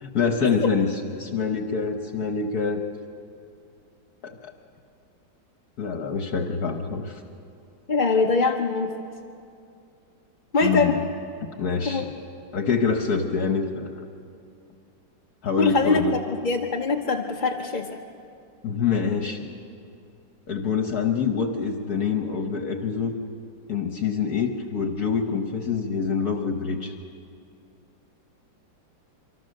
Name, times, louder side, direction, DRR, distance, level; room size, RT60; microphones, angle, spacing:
voice 1, 0.0-2.8 4.2-4.5 5.8-7.2 10.6-11.0 11.6-12.1 12.5-14.0 15.4-16.2 18.6-19.4 20.5-23.1 23.7-26.9, left 5 dB, 60° left, 4 dB, 1.5 m, -25 dB
voice 2, 7.9-8.9 10.5-11.0 11.8-12.1 15.6-16.0 16.3-18.0, left 4 dB, 35° left, 0 dB, 0.8 m, -23 dB
25.0 x 24.5 x 6.6 m, 2.5 s
omnidirectional pair, 2.0 m